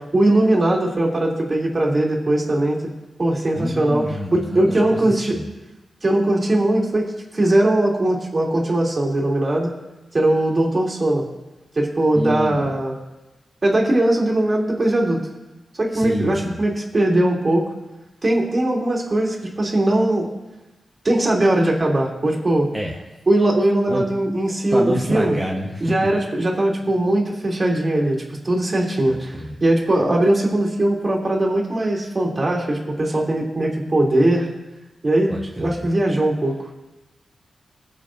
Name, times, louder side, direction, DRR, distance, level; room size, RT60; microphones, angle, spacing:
voice 1, 0.0-2.8 3.2-5.4 6.0-9.7 10.1-11.3 11.7-12.9 13.6-15.2 15.8-17.6 18.2-20.3 21.0-22.7 23.3-25.4 25.8-34.5 35.0-36.6, right 1 dB, 35° right, -2 dB, 2.9 m, -20 dB
voice 2, 3.6-5.4 12.2-12.7 15.9-16.6 22.7-23.0 23.9-24.1 24.7-25.8 29.1-29.6 35.3-35.9, equal, ahead, -3 dB, 1.2 m, -27 dB
21.0 x 7.6 x 2.6 m, 1.0 s
wide cardioid pair, 90°, 0 cm